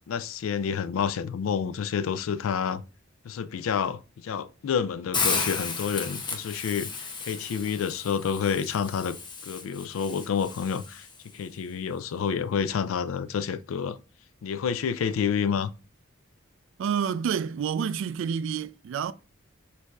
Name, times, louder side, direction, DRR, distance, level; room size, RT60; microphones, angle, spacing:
voice 1, 0.1-2.8 3.2-9.2 9.5-11.1 11.3-14.0 14.4-15.7, left 7 dB, 85° left, 0.4 m, -29 dB
Hiss, 5.1-11.2, left 5 dB, 25° left, 0.6 m, -33 dB
voice 2, 16.8-19.1, right 7 dB, 65° right, 0.3 m, -28 dB
6.3 x 2.7 x 2.3 m
head